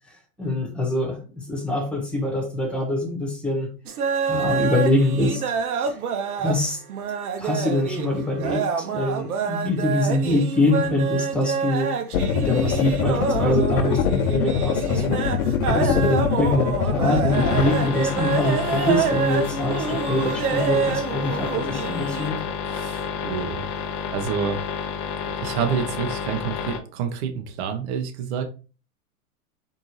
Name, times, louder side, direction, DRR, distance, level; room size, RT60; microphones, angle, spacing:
voice 1, 0.4-1.2 1.5-3.7 4.3-5.4 5.8-5.9 6.4-6.8 7.4-11.9 12.4-15.2 15.6-22.4, left 1 dB, ahead, 0 dB, 1.3 m, -24 dB
sound 1, 3.9-6.6 6.9-22.4, right 6 dB, 85° right, 0.8 m, -27 dB
sound 2, 12.1-17.7, left 7 dB, 75° left, 0.8 m, -23 dB
sound 3, 17.3-26.8, left 6 dB, 25° left, 0.5 m, -30 dB
voice 2, 22.7-23.7 24.1-24.6 25.4-28.4, right 7 dB, 50° right, 6 dB, 1.0 m, -28 dB
4.4 x 2.8 x 3.1 m, 0.34 s
hypercardioid pair, 130°, 43 cm